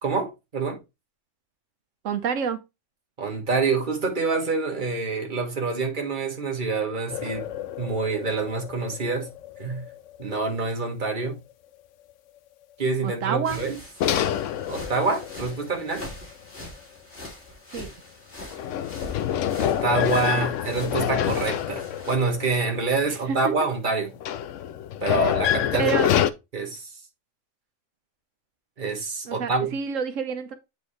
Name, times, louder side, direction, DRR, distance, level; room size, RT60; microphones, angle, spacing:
voice 1, 0.0-0.8 3.2-7.5 7.8-9.3 9.6-9.8 10.2-11.4 12.8-13.8 14.7-16.1 19.6-24.1 25.0-26.0 26.5-26.9 28.8-29.7, right 4 dB, 40° right, 1.6 m, -26 dB
voice 2, 2.0-2.6 13.0-13.6 17.7-17.9 23.1-23.4 25.8-26.1 29.3-30.5, right 6 dB, 90° right, 1.3 m, -28 dB
sound 1, 7.1-10.6 11.1-11.2 14.0-16.3 18.5-23.4 24.1-26.3, left 10 dB, 80° left, 1.0 m, -27 dB
sound 2, 13.4-22.2, left 1 dB, 50° left, 2.5 m, -42 dB
8.0 x 4.7 x 3.2 m
omnidirectional pair, 1.3 m